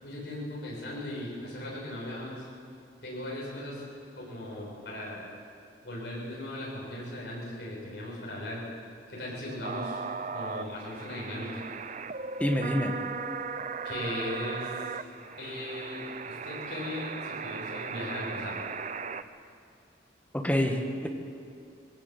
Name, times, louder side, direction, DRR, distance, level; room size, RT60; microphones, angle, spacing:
voice 1, 0.0-2.5 3.0-3.9 4.2-5.3 5.8-8.6 9.1-10.0 10.3-11.6 13.8-15.0 15.4-18.6, left 1 dB, 65° left, -5 dB, 7.0 m, -38 dB
sound 1, 9.6-19.2, right 5 dB, 40° right, 0.7 m, -37 dB
voice 2, 12.4-12.9 20.3-21.1, equal, 10° left, 3 dB, 1.6 m, -27 dB
21.0 x 17.0 x 8.3 m, 2.5 s
head